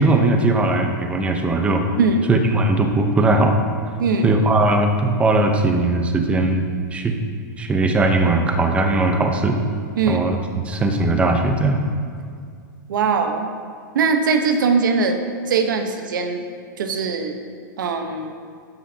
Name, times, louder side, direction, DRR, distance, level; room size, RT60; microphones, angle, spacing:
voice 1, 0.0-1.8 2.3-3.6 4.2-7.1 7.6-9.6 10.1-10.4 10.7-11.8, right 2 dB, 10° right, 5 dB, 0.8 m, -19 dB
voice 2, 2.0-2.3 4.0-4.3 10.0-10.2 12.9-13.5 13.9-16.4 16.8-17.4 17.8-18.3, right 4 dB, 80° right, 6 dB, 1.1 m, -21 dB
12.5 x 9.8 x 2.9 m, 2.2 s
hypercardioid pair, 145°, 10 cm